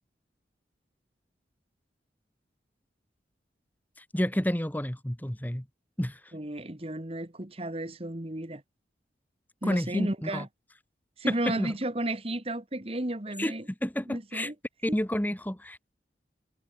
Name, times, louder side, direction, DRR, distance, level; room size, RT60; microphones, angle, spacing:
voice 1, 4.0-5.6 6.0-6.2 9.6-10.4 11.3-11.7 13.4-13.5 13.8-14.5 14.8-15.9, equal, 10° left, 1.3 m, -30 dB
voice 2, 6.3-8.6 9.6-10.5 11.2-13.6 14.1-14.5, right 1 dB, 35° right, 1.6 m, -33 dB
head